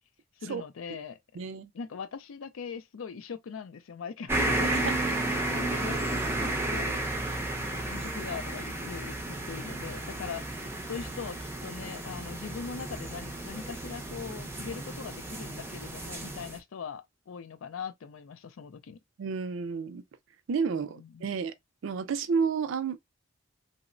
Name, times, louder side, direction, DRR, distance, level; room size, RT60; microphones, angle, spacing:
voice 1, 0.4-1.2 1.7-5.0 5.5-6.0 6.4-7.1 7.6-19.0 20.7-21.3, left 6 dB, 80° left, 0.4 m, -41 dB
voice 2, 1.4-1.7 19.2-20.0 20.5-21.5 21.8-23.0, right 5 dB, 70° right, 0.4 m, -30 dB
sound 1, 4.3-16.6, right 2 dB, 10° right, 0.4 m, -33 dB
2.9 x 2.0 x 2.4 m
head